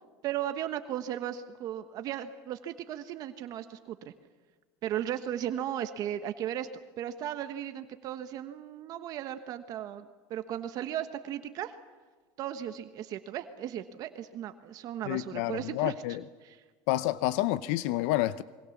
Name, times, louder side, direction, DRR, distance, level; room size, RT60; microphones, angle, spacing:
voice 1, 0.2-4.1 4.8-6.7 7.0-11.7 12.4-15.9 16.4-16.6, right 11 dB, 50° right, 9 dB, 1.2 m, -36 dB
voice 2, 15.1-16.2 16.9-18.4, left 16 dB, 75° left, 15 dB, 0.7 m, -29 dB
26.5 x 23.0 x 7.3 m, 1.4 s
supercardioid pair, 135°, 8 cm